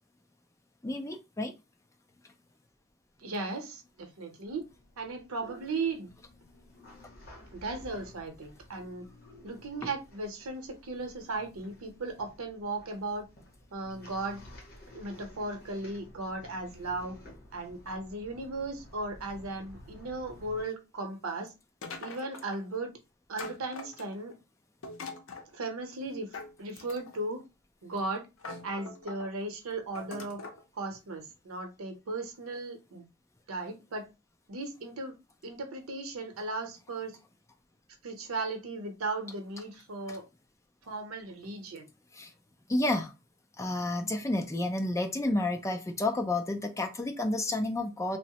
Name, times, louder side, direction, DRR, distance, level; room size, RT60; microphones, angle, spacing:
voice 1, 0.8-1.5 40.1-40.2 42.1-42.3 42.7-43.1 43.6-48.2, left 2 dB, 15° left, 0.3 m, -30 dB
voice 2, 3.2-4.7 5.0-6.1 7.5-9.1 9.4-13.3 13.7-14.4 14.9-17.1 17.5-21.5 22.0-22.9 23.3-24.3 25.5-27.4 27.8-28.3 28.6-30.4 30.7-33.0 33.5-34.1 34.5-35.2 35.4-37.2 38.0-40.2 40.9-41.9, right 2 dB, 90° right, 0.7 m, -36 dB
sound 1, 4.5-20.6, left 1 dB, 45° left, 0.9 m, -53 dB
sound 2, 21.8-22.6 23.4-24.3 24.8-25.5 26.3-27.3 27.9-28.0 28.4-29.3 30.0-30.6, left 3 dB, 65° left, 0.5 m, -43 dB
3.0 x 2.0 x 2.8 m
head